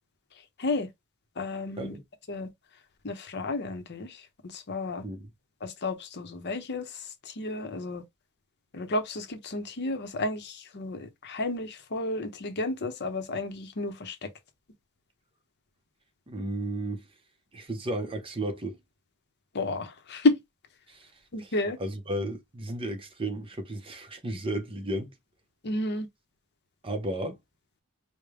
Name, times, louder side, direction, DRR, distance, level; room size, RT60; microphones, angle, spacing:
voice 1, 1.4-2.0 2.3-2.5 3.0-4.2 4.5-5.0 5.6-6.9 7.3-8.0 8.7-14.3 19.5-20.4 21.3-21.8 25.6-26.1, left 2 dB, 50° left, 0.8 m, -31 dB
voice 2, 16.3-17.0 17.5-18.8 20.9-21.1 21.4-21.5 21.8-25.1 26.8-27.4, right 1 dB, 25° right, 0.7 m, -33 dB
5.0 x 2.1 x 3.4 m
head